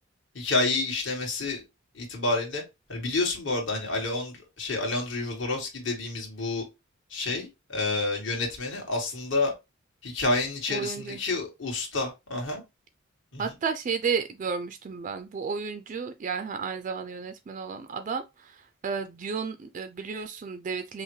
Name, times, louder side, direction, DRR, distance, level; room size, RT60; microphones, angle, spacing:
voice 1, 0.3-1.6 1.9-2.6 2.9-6.6 7.1-9.5 10.0-12.6 13.3-13.4, left 2 dB, 65° left, 1.7 m, -29 dB
voice 2, 10.7-11.2 13.4-21.0, right 5 dB, 40° right, 0.3 m, -32 dB
5.4 x 2.1 x 3.1 m
head